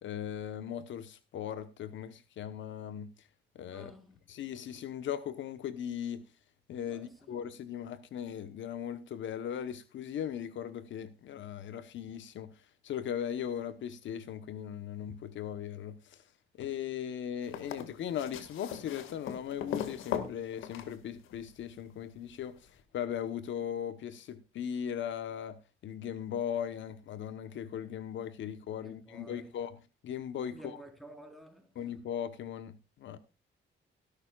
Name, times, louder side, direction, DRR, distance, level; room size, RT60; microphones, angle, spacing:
voice 1, 0.0-3.3 3.5-3.9 4.3-6.2 6.7-12.5 12.8-16.2 16.6-29.8 30.0-30.8 31.8-33.2, left 9 dB, 70° left, 1.0 m, -38 dB
voice 2, 3.7-4.2 6.9-7.4 28.8-29.5 30.5-31.8, right 1 dB, ahead, 4.1 m, -52 dB
sound 1, 17.4-21.5 22.8-22.9, left 9 dB, 90° left, 1.9 m, -39 dB
17.5 x 11.5 x 2.4 m
cardioid pair, 90°, 20 cm